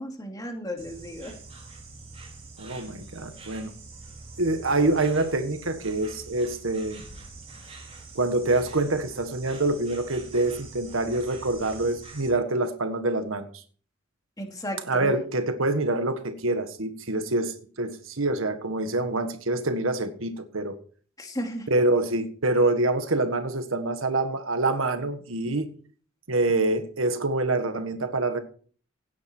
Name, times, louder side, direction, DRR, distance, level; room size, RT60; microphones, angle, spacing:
voice 1, 0.0-1.3 14.4-15.1 21.2-21.7, equal, 20° left, 3 dB, 2.7 m, -34 dB
Insect, 0.8-12.3, right 3 dB, 30° right, 4.4 m, -45 dB
voice 2, 2.6-3.7 4.4-7.0 8.1-13.6 14.9-20.8 21.7-25.7 26.3-28.4, right 2 dB, 80° right, 8 dB, 1.6 m, -26 dB
17.5 x 9.4 x 4.5 m, 0.43 s
head